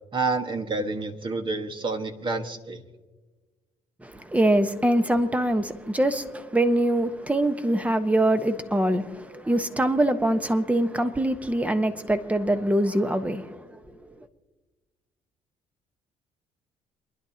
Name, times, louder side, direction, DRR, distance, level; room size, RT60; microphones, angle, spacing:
voice 1, 0.1-2.8, right 3 dB, 35° right, 1.7 m, -29 dB
voice 2, 4.0-13.8, right 1 dB, 10° right, 1.2 m, -24 dB
28.5 x 11.0 x 2.9 m
supercardioid pair, 80°, 14 cm